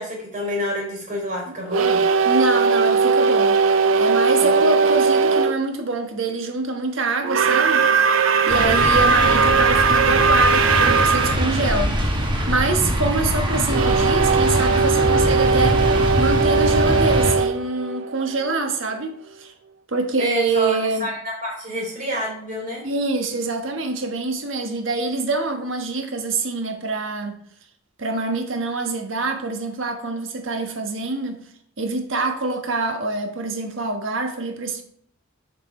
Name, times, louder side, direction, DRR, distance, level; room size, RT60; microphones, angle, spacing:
voice 1, 0.0-2.0 4.4-4.7 20.2-22.8, equal, 40° right, 3.7 m, -28 dB
sound 1, 1.7-5.6 7.2-11.4 13.7-18.6, right 5 dB, 90° right, 0.6 m, -19 dB
voice 2, 2.2-3.6 4.0-7.9 8.5-11.9 12.5-19.5 19.9-21.1 22.8-27.4 28.0-31.4 31.8-34.8, right 3 dB, 75° right, 1.3 m, -25 dB
sound 2, 8.5-17.3, equal, 25° right, 1.3 m, -23 dB
7.5 x 6.1 x 4.3 m
head